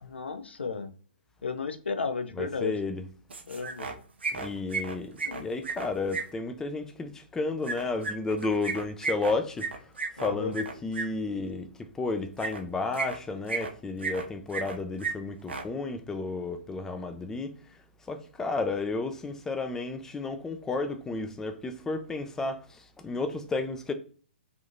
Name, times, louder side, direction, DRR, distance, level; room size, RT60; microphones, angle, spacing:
voice 1, 0.0-0.9 1.4-2.8 3.5-3.9 5.2-5.5 10.2-10.5, left 5 dB, 75° left, 0.5 m, -33 dB
voice 2, 2.4-3.1 4.3-9.7 10.2-17.6 18.1-23.9, left 3 dB, 10° left, 0.3 m, -32 dB
sound 1, 3.3-3.9 4.2-6.2 7.6-11.1 12.4-12.6 12.9-13.7 14.0-14.8 15.0-15.1 15.4-15.6, right 5 dB, 75° right, 0.6 m, -33 dB
3.4 x 2.6 x 2.5 m
figure-of-eight pair, 120°, 6 cm